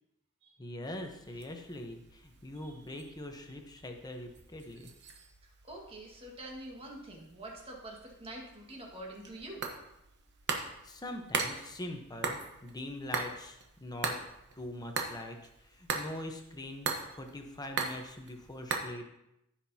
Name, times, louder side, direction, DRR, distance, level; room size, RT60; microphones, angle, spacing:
voice 1, 0.6-4.9 10.8-14.2 14.6-15.4 15.6-19.0, left 1 dB, 20° left, 4 dB, 1.0 m, -43 dB
sound 1, 0.8-18.8, right 4 dB, 50° right, 1.0 m, -41 dB
voice 2, 2.6-3.1 3.7-3.8 5.6-9.7, right 1 dB, 25° right, -1 dB, 1.8 m, -46 dB
14.5 x 6.0 x 2.8 m, 0.84 s
head